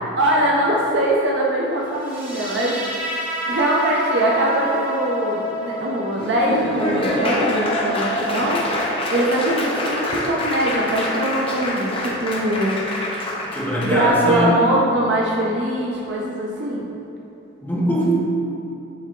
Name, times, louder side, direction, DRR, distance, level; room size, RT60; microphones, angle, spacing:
voice 1, 0.2-8.6 9.1-13.0 13.8-16.9, right 1 dB, 60° right, -3 dB, 0.6 m, -22 dB
sound 1, 2.0-9.0, equal, 10° right, 1.3 m, -30 dB
Laughter / Applause, 6.2-14.0, left 1 dB, 30° left, 0.6 m, -25 dB
voice 2, 13.5-14.6 17.6-18.1, equal, 10° left, -7 dB, 1.1 m, -21 dB
7.6 x 3.4 x 3.7 m, 2.9 s
head